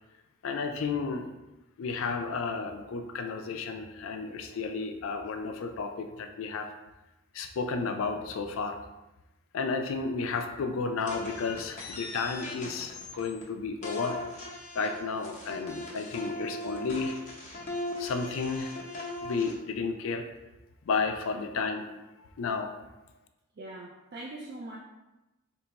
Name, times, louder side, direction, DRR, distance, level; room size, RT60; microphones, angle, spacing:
voice 1, 0.4-1.3 1.8-6.7 7.3-8.8 9.5-14.2 14.7-17.2 18.0-18.7 19.2-20.2 20.9-21.9 22.4-22.7, left 4 dB, 70° left, 6 dB, 0.3 m, -32 dB
sound 1, 11.1-13.4 13.8-19.5, left 2 dB, 35° left, 0.6 m, -39 dB
voice 2, 23.6-24.8, right 2 dB, 50° right, -4 dB, 0.4 m, -42 dB
2.8 x 2.2 x 4.0 m, 1.0 s
head